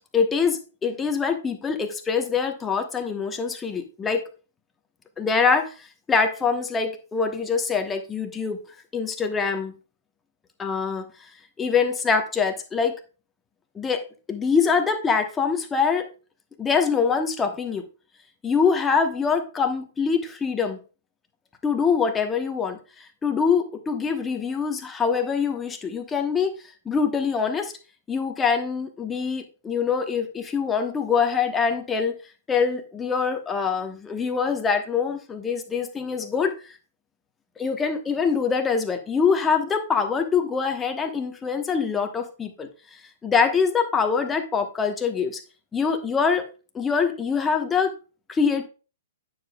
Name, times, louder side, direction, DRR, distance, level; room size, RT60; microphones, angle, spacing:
voice 1, 0.0-4.2 5.2-8.6 8.9-9.7 10.6-11.1 11.6-12.9 13.7-14.0 14.3-16.1 16.6-17.9 18.4-20.8 21.6-26.5 26.8-27.7 28.1-32.1 32.5-36.7 37.6-42.7 43.2-45.4 45.7-46.4 46.7-47.9 48.3-48.7, left 5 dB, 15° left, 5 dB, 1.1 m, -24 dB
9.3 x 6.9 x 2.3 m, 0.34 s
figure-of-eight pair, 115°, 0 cm